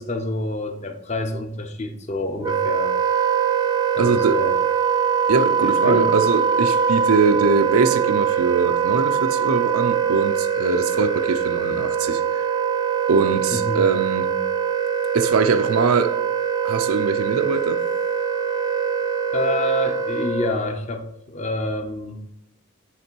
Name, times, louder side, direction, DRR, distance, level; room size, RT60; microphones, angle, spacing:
voice 1, 0.0-2.9 3.9-4.6 5.6-6.1 13.5-13.8 19.3-22.2, left 1 dB, 30° left, 0.6 m, -27 dB
Wind instrument woodwind instrument, 2.4-20.6, right 7 dB, 20° right, 0.4 m, -22 dB
voice 2, 4.0-4.4 5.3-12.4 13.1-14.4 15.1-16.2 16.6-17.8, right 4 dB, 85° right, 0.5 m, -22 dB
8.1 x 3.3 x 4.5 m
head